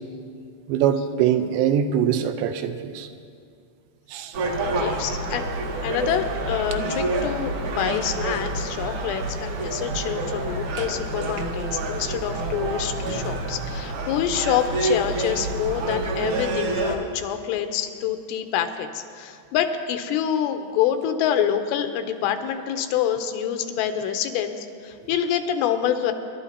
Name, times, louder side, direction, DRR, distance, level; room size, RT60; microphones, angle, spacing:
voice 1, 0.7-3.1 4.1-4.3, right 9 dB, 85° right, 8 dB, 2.9 m, -23 dB
Gull seagull, 4.3-17.0, right 2 dB, 65° right, 2.0 m, -28 dB
voice 2, 4.7-5.4 5.8-26.1, left 9 dB, 90° left, 7 dB, 2.9 m, -26 dB
26.5 x 12.0 x 2.8 m, 2.3 s
omnidirectional pair, 5.0 m